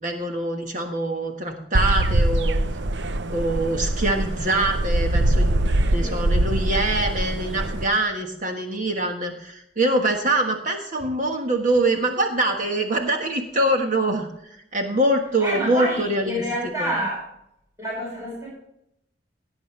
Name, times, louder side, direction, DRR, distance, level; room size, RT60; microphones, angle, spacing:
voice 1, 0.0-2.6 3.3-14.3 14.7-16.4 16.8-16.9, right 1 dB, 45° right, 3 dB, 1.4 m, -24 dB
sound 1, 1.7-7.8, right 1 dB, 65° right, 0.7 m, -23 dB
voice 2, 5.9-6.3 15.4-17.3 17.8-18.5, equal, 15° right, -5 dB, 5.5 m, -28 dB
17.5 x 8.8 x 3.3 m, 0.77 s
head